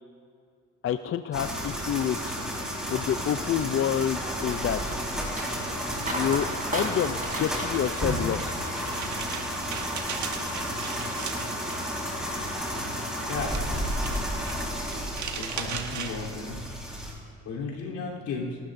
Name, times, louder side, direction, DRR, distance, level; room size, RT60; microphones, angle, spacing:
voice 1, 0.8-4.9 6.0-8.7, left 9 dB, 45° left, 10 dB, 0.4 m, -29 dB
sound 1, 1.3-17.1, equal, ahead, 4.3 m, -32 dB
sound 2, 3.1-11.4 11.7-12.3 12.7-13.0, right 2 dB, 25° right, 3.5 m, -38 dB
sound 3, 6.7-16.1, right 7 dB, 70° right, 1.4 m, -39 dB
voice 2, 15.4-16.6 17.5-18.6, left 4 dB, 85° left, -3 dB, 3.5 m, -34 dB
26.0 x 12.5 x 2.6 m, 2.3 s
cardioid pair, 90°, 30 cm